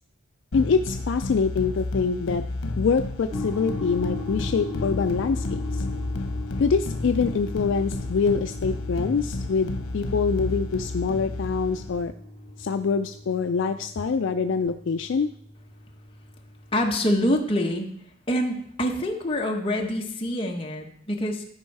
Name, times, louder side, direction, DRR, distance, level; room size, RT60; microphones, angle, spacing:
sound 1, 0.5-12.0, left 2 dB, 90° left, 0.9 m, -31 dB
voice 1, 0.5-2.4 2.8-5.8 6.6-12.1 12.6-15.3, left 5 dB, 55° left, 8 dB, 0.3 m, -25 dB
sound 2, 3.3-17.0, left 3 dB, ahead, 2.3 m, -39 dB
voice 2, 16.7-17.9 18.3-21.4, equal, 25° left, 1 dB, 1.2 m, -25 dB
12.5 x 5.3 x 4.7 m, 0.69 s
head